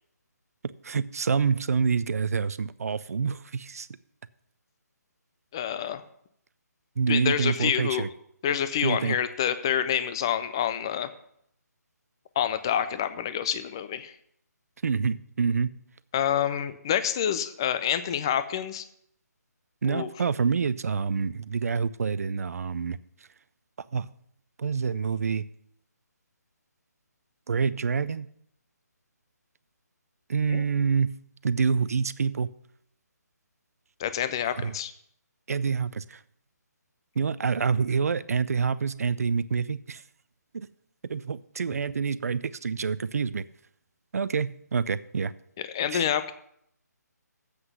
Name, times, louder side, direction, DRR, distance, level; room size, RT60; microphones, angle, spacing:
voice 1, 0.8-3.9 7.0-8.1 8.8-9.2 14.8-15.7 19.8-23.0 23.9-24.1 24.6-25.5 27.5-28.3 30.3-31.1 31.4-32.5 34.6-34.7 35.5-36.2 37.2-40.0 40.5-40.7 41.1-43.4 44.1-45.3 45.9-46.0, right 5 dB, 55° right, 0.5 m, -27 dB
voice 2, 5.5-6.0 7.1-8.0 8.4-11.1 12.4-14.1 16.1-18.8 19.8-20.1 30.5-30.6 34.0-34.9 45.7-46.3, left 9 dB, 15° left, 0.3 m, -27 dB
8.0 x 5.8 x 7.8 m
hypercardioid pair, 165°, 10 cm